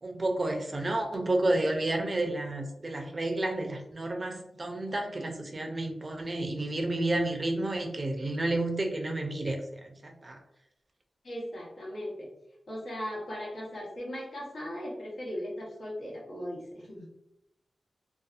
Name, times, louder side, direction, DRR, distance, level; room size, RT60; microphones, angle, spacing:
voice 1, 0.0-9.6 10.0-10.4, right 2 dB, 40° right, 3 dB, 0.5 m, -30 dB
voice 2, 11.2-12.3 12.7-17.1, equal, 70° left, -4 dB, 1.0 m, -38 dB
2.6 x 2.3 x 2.4 m, 0.84 s
wide cardioid pair, 80°, 0 cm